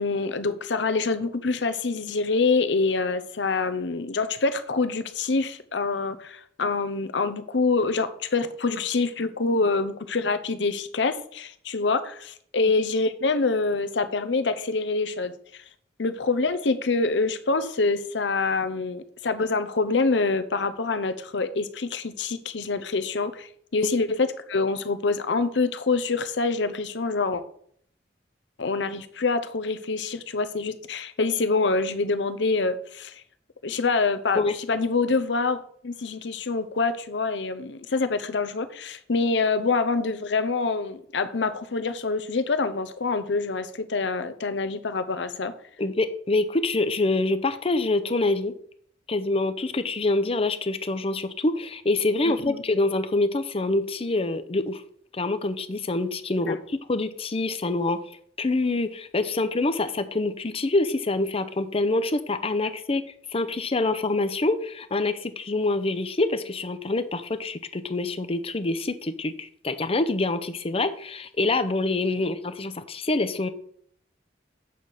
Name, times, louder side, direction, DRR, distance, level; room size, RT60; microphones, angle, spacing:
voice 1, 0.0-15.6 16.0-27.4 28.6-33.2 33.6-45.5 52.2-52.6 56.5-56.6, left 3 dB, 75° left, 11 dB, 0.8 m, -26 dB
voice 2, 45.8-48.5 49.1-54.8 55.1-58.0 58.4-63.0 63.3-73.5, left 2 dB, 35° left, 11 dB, 0.7 m, -26 dB
8.3 x 6.4 x 4.2 m, 0.62 s
head